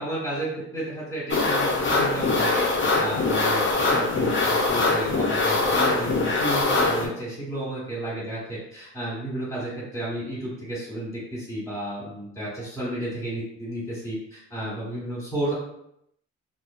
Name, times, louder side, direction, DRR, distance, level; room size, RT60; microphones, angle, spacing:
voice 1, 0.0-15.5, right 1 dB, 10° left, -9 dB, 1.2 m, -32 dB
sound 1, 1.3-7.1, left 3 dB, 45° left, 0.6 m, -22 dB
2.5 x 2.4 x 2.2 m, 0.76 s
cardioid pair, 85°, 29 cm